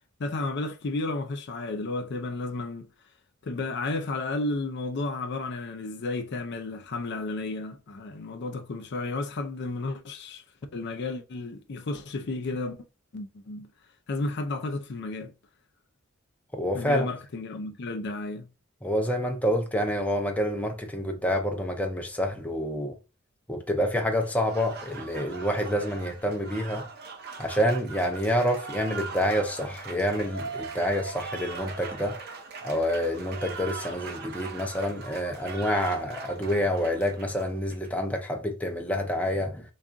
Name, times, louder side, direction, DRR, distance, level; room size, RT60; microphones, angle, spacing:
voice 1, 0.2-2.9 3.4-10.4 10.7-12.8 13.1-13.7 14.1-15.3 16.7-18.5, left 2 dB, 60° left, 0.5 m, -32 dB
voice 2, 16.5-17.1 18.8-23.0 23.5-26.8 27.4-32.2 32.6-39.6, equal, 5° left, 0.5 m, -28 dB
Applause, 24.2-37.9, right 4 dB, 55° right, 0.6 m, -40 dB
3.5 x 2.4 x 3.7 m
head